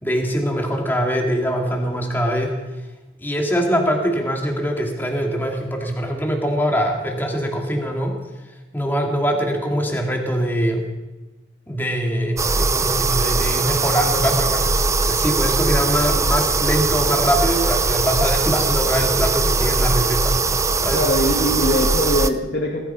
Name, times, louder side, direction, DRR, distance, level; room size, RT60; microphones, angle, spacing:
voice 1, 0.0-2.5 3.2-8.1 8.7-10.8 11.7-20.6 20.8-21.0, equal, 10° left, 1 dB, 2.5 m, -23 dB
sound 1, 12.4-22.3, right 3 dB, 15° right, 0.6 m, -20 dB
voice 2, 20.9-22.9, left 1 dB, 65° left, -1 dB, 2.3 m, -21 dB
20.0 x 12.5 x 5.7 m, 1.2 s
head